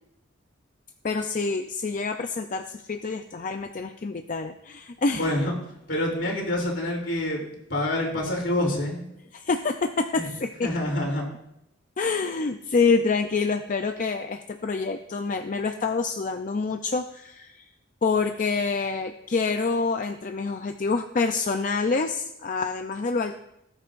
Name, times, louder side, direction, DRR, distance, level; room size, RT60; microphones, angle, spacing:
voice 1, 1.0-5.3 9.3-10.7 12.0-17.7 18.0-23.4, left 4 dB, 40° left, 6 dB, 0.5 m, -27 dB
voice 2, 5.1-5.6 5.9-7.4 7.7-9.1 10.1-10.3 10.6-11.2, left 1 dB, 70° left, -1 dB, 3.2 m, -26 dB
18.0 x 8.9 x 2.5 m, 0.81 s
head